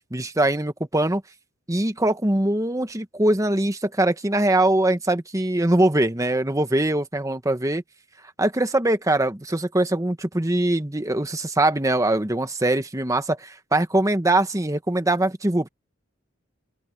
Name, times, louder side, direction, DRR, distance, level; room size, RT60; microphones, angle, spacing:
voice 1, 0.1-1.2 1.7-7.8 8.4-15.7, right 1 dB, 15° right, 1.2 m, -22 dB
open air
head